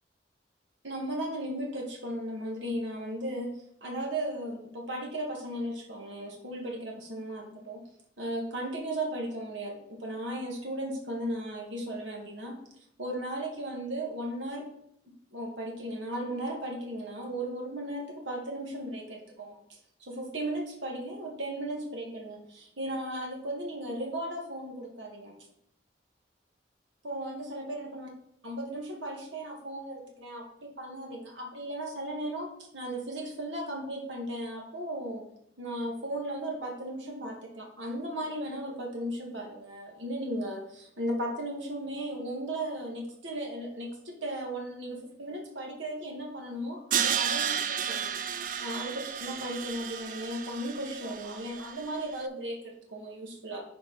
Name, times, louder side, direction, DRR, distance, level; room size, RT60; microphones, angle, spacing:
voice 1, 0.8-3.5 3.8-7.8 8.2-12.6 13.0-14.7 15.3-19.6 20.0-25.3 27.0-28.1 28.4-35.2 35.6-48.9 49.2-53.6, right 1 dB, 75° right, 0 dB, 1.9 m, -36 dB
Crash cymbal, 46.9-52.0, right 8 dB, 45° right, 0.4 m, -32 dB
10.5 x 4.7 x 4.2 m, 0.74 s
head